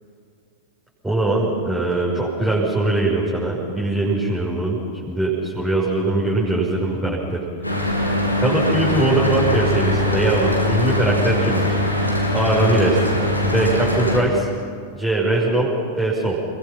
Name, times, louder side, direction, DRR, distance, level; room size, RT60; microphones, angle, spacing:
voice 1, 1.0-7.4 7.7-7.9 8.4-11.8 12.3-13.0 13.4-14.5 14.9-16.4, right 2 dB, 5° right, -7 dB, 6.2 m, -21 dB
Mechanical fan, 7.6-14.2, left 1 dB, 90° left, 3.7 m, -21 dB
29.5 x 22.5 x 6.0 m, 2.3 s
figure-of-eight pair, 90°, 0 cm